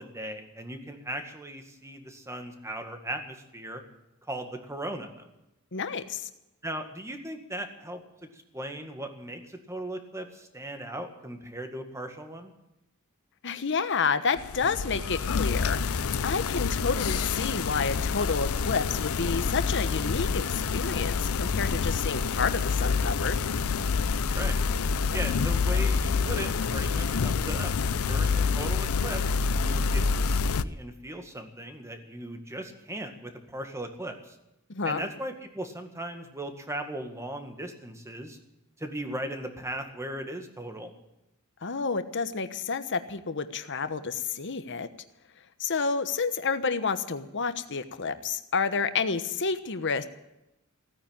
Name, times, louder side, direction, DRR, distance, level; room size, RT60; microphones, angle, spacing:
voice 1, 0.0-3.8 4.3-5.3 6.6-8.0 8.3-12.5 24.3-24.6 25.1-27.7 28.1-34.4 34.8-38.4 38.8-40.9, right 1 dB, 15° right, 5 dB, 1.9 m, -38 dB
voice 2, 5.7-6.3 13.4-23.4 34.7-35.1 41.6-44.9 45.6-50.1, left 5 dB, 55° left, 11 dB, 1.1 m, -30 dB
sound 1, 14.4-30.6, left 5 dB, 70° left, 0.6 m, -27 dB
16.5 x 9.6 x 8.9 m, 0.91 s
head